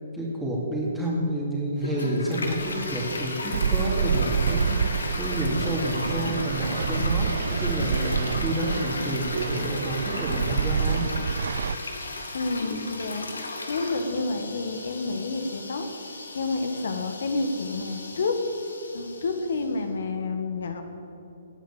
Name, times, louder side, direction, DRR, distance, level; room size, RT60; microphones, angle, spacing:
voice 1, 0.1-11.1, equal, 5° right, -6 dB, 2.7 m, -29 dB
Toilet flush, 1.8-19.7, left 2 dB, 85° left, 2.1 m, -35 dB
sound 1, 2.2-11.8, left 2 dB, 40° left, 4.1 m, -44 dB
sound 2, 3.5-11.8, right 7 dB, 65° right, 0.4 m, -28 dB
voice 2, 12.3-13.3 13.7-15.9 16.3-18.4 18.9-20.9, left 3 dB, 65° left, 6 dB, 1.8 m, -29 dB
17.0 x 9.1 x 7.3 m, 2.7 s
hypercardioid pair, 140°, 0 cm